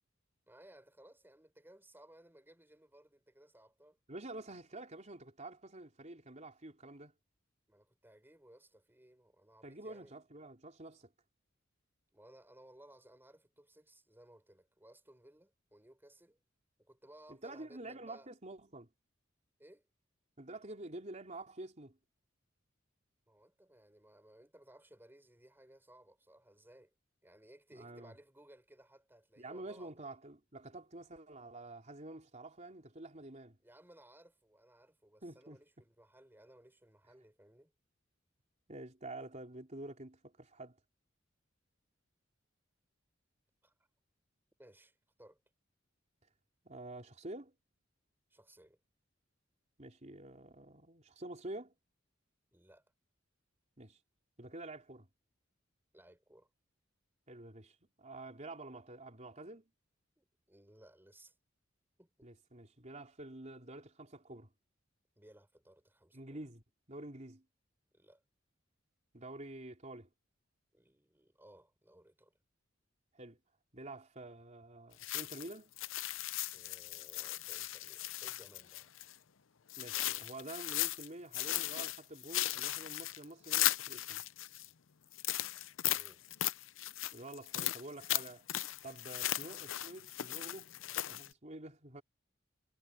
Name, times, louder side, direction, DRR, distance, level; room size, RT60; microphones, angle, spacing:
voice 1, 0.5-4.0 7.7-10.2 12.1-16.4 16.8-18.3 19.6-19.8 23.3-26.9 27.2-29.9 33.6-37.7 43.6-43.7 44.6-45.4 48.3-48.8 52.5-52.8 55.9-56.5 60.2-61.3 62.0-62.3 65.2-66.4 67.9-68.2 70.7-72.3 76.5-78.9 85.9-86.2, right 1 dB, 10° right, 4.3 m, -61 dB
voice 2, 4.1-7.1 9.6-11.1 17.3-18.9 20.4-22.0 27.7-28.1 29.4-33.6 35.2-35.6 38.7-40.8 46.6-47.5 49.8-51.7 53.8-54.0 54.4-55.1 57.3-59.6 62.2-64.5 66.1-67.4 69.1-70.1 73.1-73.4 73.7-75.7 79.8-84.2 87.1-88.5 88.8-90.7 91.1-92.0, right 2 dB, 35° right, 3.9 m, -48 dB
sound 1, 75.0-79.1 79.7-81.1 81.3-84.7 85.1-91.3, left 14 dB, 85° left, 0.7 m, -37 dB
head